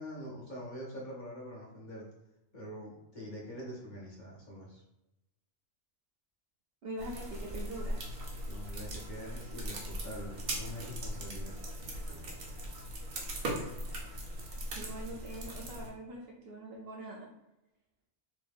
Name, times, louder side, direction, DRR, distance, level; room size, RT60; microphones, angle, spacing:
voice 1, 0.0-2.0 2.5-4.8 8.4-11.6, equal, 40° left, -5 dB, 0.8 m, -44 dB
voice 2, 6.8-8.1 14.7-17.3, right 1 dB, 60° right, -2 dB, 0.7 m, -43 dB
sound 1, 7.0-15.9, right 1 dB, 85° right, 1.2 m, -39 dB
3.1 x 2.6 x 3.4 m, 0.95 s
omnidirectional pair, 1.4 m